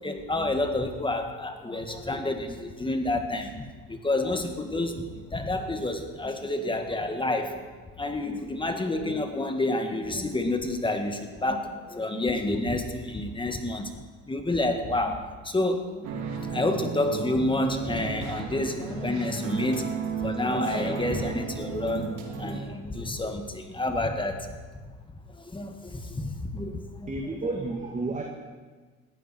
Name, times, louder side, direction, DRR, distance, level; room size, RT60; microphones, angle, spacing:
voice 1, 0.0-7.5 8.0-13.9 14.3-16.2 16.5-19.9 20.2-24.5 25.5-27.1, left 2 dB, 15° left, 5 dB, 2.0 m, -29 dB
sound 1, 16.0-22.6, right 6 dB, 70° right, 3.2 m, -34 dB
voice 2, 27.1-28.2, right 3 dB, 25° right, 1 dB, 2.2 m, -31 dB
20.0 x 15.0 x 4.6 m, 1.4 s
supercardioid pair, 95°, 31 cm